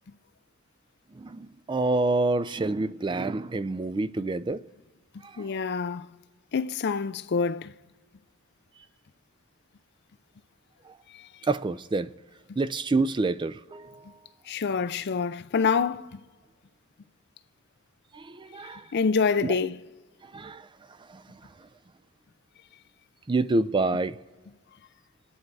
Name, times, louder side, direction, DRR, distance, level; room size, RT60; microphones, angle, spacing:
voice 1, 1.1-4.6 5.2-5.5 10.9-11.0 11.4-12.1 12.6-14.2 18.1-18.9 19.4-19.5 20.2-20.7 21.1-21.5 23.3-24.2, right 2 dB, 20° right, 0.4 m, -28 dB
voice 2, 5.4-6.1 6.5-7.7 11.1-11.3 14.5-16.2 18.9-19.8, left 5 dB, 50° left, 0.5 m, -26 dB
27.0 x 9.9 x 4.7 m
head